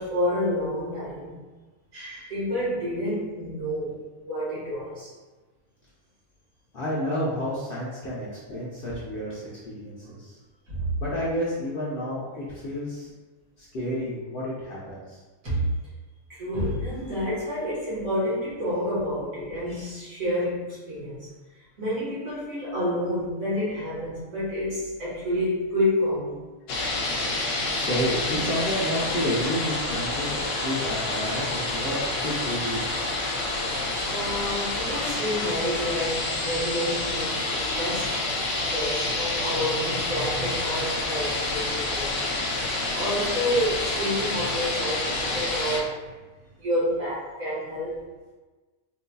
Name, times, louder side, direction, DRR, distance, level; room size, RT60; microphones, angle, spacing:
voice 1, 0.0-1.4 1.9-5.1 10.0-10.1 10.7-11.0 15.4-15.7 16.3-21.3 21.8-26.4 34.1-42.3 42.9-46.1 46.6-48.0, equal, 70° right, -9 dB, 1.9 m, -29 dB
voice 2, 6.7-10.3 11.0-13.1 13.6-15.2 27.7-32.8, equal, 50° left, -7 dB, 0.7 m, -30 dB
sound 1, 26.7-45.8, left 2 dB, 80° left, 1.0 m, -28 dB
3.9 x 2.7 x 2.2 m, 1.3 s
omnidirectional pair, 1.5 m